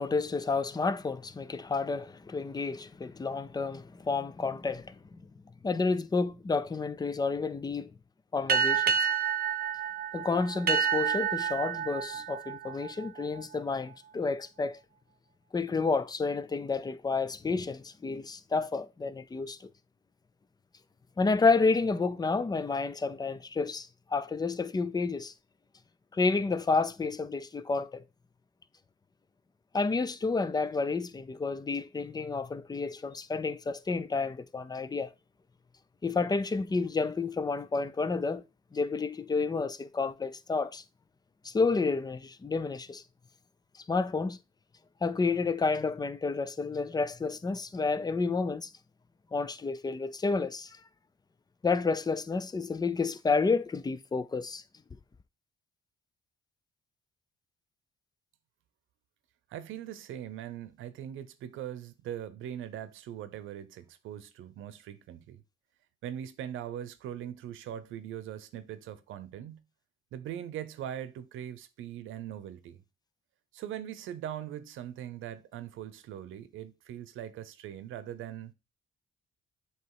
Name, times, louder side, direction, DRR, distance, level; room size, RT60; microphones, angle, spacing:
voice 1, 0.0-5.2 5.6-7.9 8.3-9.0 10.1-14.8 15.5-19.7 21.2-25.3 26.1-28.0 29.7-35.1 36.0-38.4 38.7-40.8 41.4-43.0 43.8-44.4 45.0-48.7 49.3-50.8 51.6-54.6, left 4 dB, 20° left, 0.6 m, -30 dB
sound 1, 8.5-13.6, right 8 dB, 50° right, 0.6 m, -29 dB
voice 2, 59.5-65.4 66.0-69.6 70.1-72.8 73.5-78.5, right 10 dB, 85° right, 0.8 m, -41 dB
8.0 x 3.1 x 4.7 m
cardioid pair, 90°, 20 cm